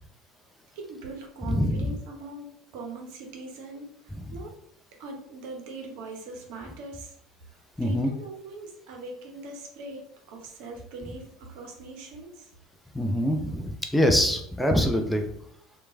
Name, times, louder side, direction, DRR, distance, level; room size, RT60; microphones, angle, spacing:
voice 1, 0.7-3.9 4.3-4.6 5.0-7.2 7.8-10.0 10.3-12.5, right 3 dB, 65° right, 1 dB, 0.7 m, -41 dB
voice 2, 1.4-2.0 4.3-4.4 7.8-8.1 12.9-15.2, equal, 5° left, 4 dB, 0.4 m, -24 dB
3.0 x 2.2 x 2.5 m, 0.68 s
hypercardioid pair, 75°, 0 cm